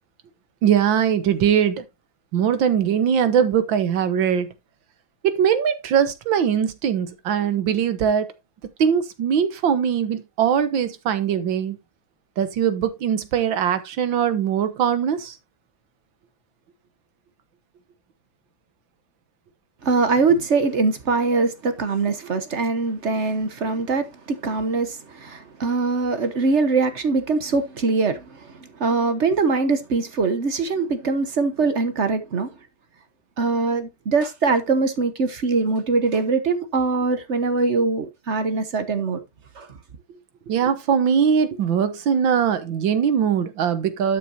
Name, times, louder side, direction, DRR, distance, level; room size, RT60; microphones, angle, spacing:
voice 1, 0.6-1.8 2.3-4.5 5.2-8.3 8.8-11.8 12.4-15.4 40.5-44.2, right 8 dB, 65° right, 1.7 m, -21 dB
voice 2, 19.8-32.5 33.4-39.2 39.5-39.7, right 4 dB, 45° right, 1.0 m, -22 dB
12.0 x 6.7 x 2.7 m
omnidirectional pair, 2.3 m